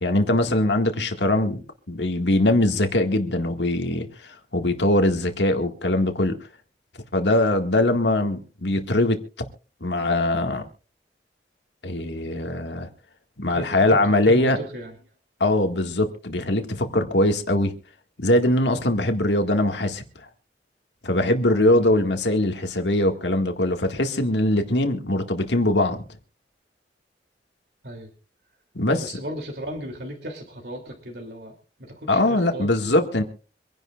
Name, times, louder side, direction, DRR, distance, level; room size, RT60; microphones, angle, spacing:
voice 1, 0.0-6.4 7.1-9.2 9.8-10.6 11.8-12.9 13.4-14.6 15.4-17.7 18.2-20.0 21.0-26.0 28.8-29.1 32.1-33.2, left 1 dB, 85° left, 1.9 m, -22 dB
voice 2, 13.4-14.9 21.8-22.0 27.8-28.1 28.9-31.5 31.8-33.2, equal, 65° right, 2.9 m, -36 dB
26.0 x 11.0 x 2.5 m
head